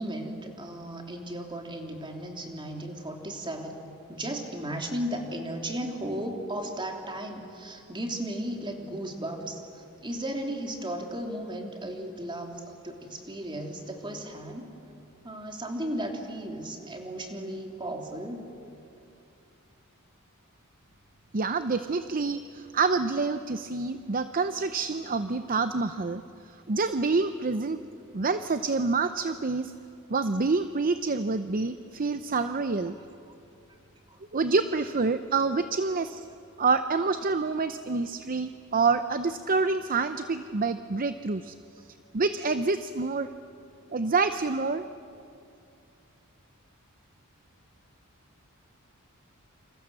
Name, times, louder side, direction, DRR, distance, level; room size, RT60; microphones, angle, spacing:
voice 1, 0.0-3.7 4.1-14.7 15.2-18.4 34.1-34.2, right 1 dB, 20° right, 2 dB, 3.2 m, -35 dB
voice 2, 21.3-26.2 26.7-27.8 28.1-29.7 30.1-32.9 34.3-36.2 36.6-41.5 42.1-43.3 43.9-44.8, right 4 dB, 40° right, 10 dB, 0.7 m, -27 dB
28.5 x 27.0 x 7.7 m, 2.6 s
head